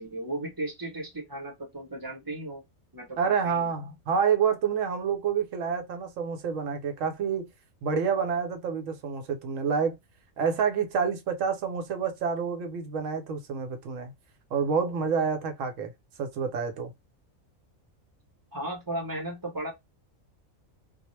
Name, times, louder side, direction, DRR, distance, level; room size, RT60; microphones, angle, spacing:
voice 1, 0.0-2.6 2.9-3.7 18.5-19.7, right 1 dB, 20° right, 0.6 m, -35 dB
voice 2, 3.2-7.5 7.8-9.9 10.4-14.1 14.5-15.9 16.2-16.9, right 6 dB, 75° right, 1.0 m, -28 dB
2.3 x 2.0 x 3.0 m
omnidirectional pair, 1.4 m